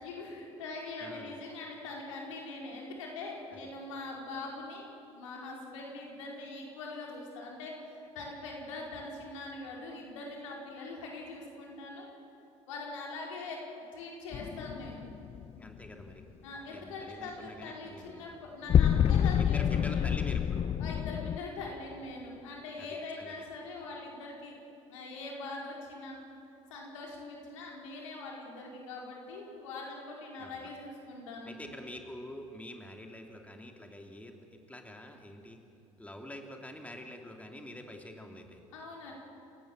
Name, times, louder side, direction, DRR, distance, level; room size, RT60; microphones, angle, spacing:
voice 1, 0.0-12.1 12.7-13.6 13.9-15.0 16.4-20.1 20.8-24.5 24.9-26.2 26.7-31.5 38.7-39.1, left 3 dB, 70° left, -1 dB, 4.9 m, -42 dB
voice 2, 1.0-1.4 3.5-3.6 15.6-16.3 16.7-18.3 19.4-20.6 22.8-22.9 23.2-23.3 30.4-30.7 31.5-35.6 36.0-38.6, left 1 dB, 10° left, 3 dB, 2.9 m, -46 dB
sound 1, 14.3-15.8 18.7-21.4, left 9 dB, 35° left, 0.6 m, -27 dB
29.5 x 17.5 x 7.5 m, 2.9 s
figure-of-eight pair, 55°, 17 cm